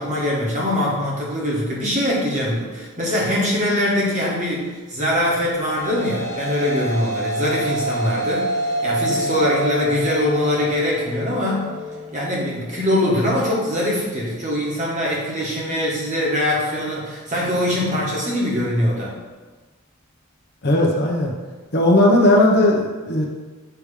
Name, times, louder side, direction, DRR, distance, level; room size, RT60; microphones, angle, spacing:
voice 1, 0.0-11.7 12.1-19.1, left 1 dB, 35° right, -5 dB, 1.6 m, -22 dB
sound 1, 5.4-13.9, right 1 dB, 10° left, 0.8 m, -28 dB
voice 2, 20.6-21.3 21.7-23.2, left 1 dB, 45° left, -2 dB, 0.9 m, -16 dB
6.9 x 3.2 x 5.0 m, 1.3 s
head